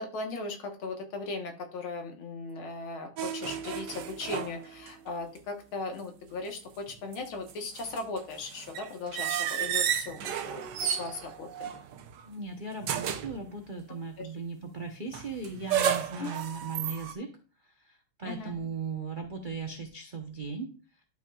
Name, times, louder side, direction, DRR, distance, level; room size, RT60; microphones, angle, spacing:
voice 1, 0.0-11.7 14.2-14.3 16.2-16.3 18.2-18.6, left 3 dB, 70° left, 4 dB, 2.1 m, -38 dB
sound 1, 3.2-5.1 5.4-5.5 6.9-12.3 12.8-13.4 15.1-17.1, right 9 dB, 65° right, 1.1 m, -33 dB
voice 2, 12.3-17.3 17.8-20.7, right 4 dB, 50° right, 2 dB, 0.6 m, -37 dB
11.5 x 5.9 x 2.4 m, 0.37 s
omnidirectional pair, 2.4 m